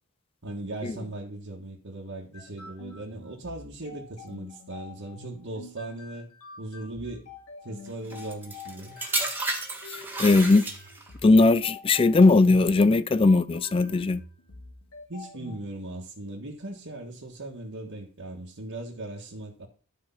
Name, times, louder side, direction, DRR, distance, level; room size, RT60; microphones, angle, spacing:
voice 1, 0.4-6.3 6.6-7.3 7.6-8.9 15.1-19.7, right 2 dB, 60° right, 1.6 m, -38 dB
sound 1, 2.3-15.6, left 3 dB, 85° left, 2.3 m, -46 dB
sound 2, 8.1-11.2 12.0-12.2, right 2 dB, 10° right, 1.7 m, -32 dB
voice 2, 9.9-10.6 11.2-14.2, left 3 dB, 25° left, 0.4 m, -19 dB
12.5 x 4.8 x 5.7 m
head